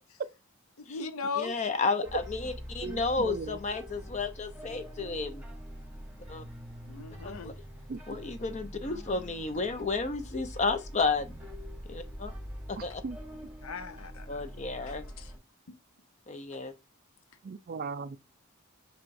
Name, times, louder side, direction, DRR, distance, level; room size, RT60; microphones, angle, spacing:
voice 1, 0.8-1.6 6.8-7.5 13.6-14.3 14.8-15.3, left 5 dB, 75° left, 0.6 m, -38 dB
voice 2, 1.4-5.4 6.3-6.4 7.2-7.5 8.1-11.4 11.9-12.3 12.7-13.0 14.3-15.0 16.3-16.7, left 4 dB, 35° left, 0.6 m, -32 dB
sound 1, 2.1-15.4, equal, 5° right, 0.9 m, -44 dB
voice 3, 2.8-3.6 7.0-7.1 7.9-8.0 12.8-13.2 17.4-18.2, right 4 dB, 45° right, 0.3 m, -38 dB
4.6 x 4.3 x 2.6 m
head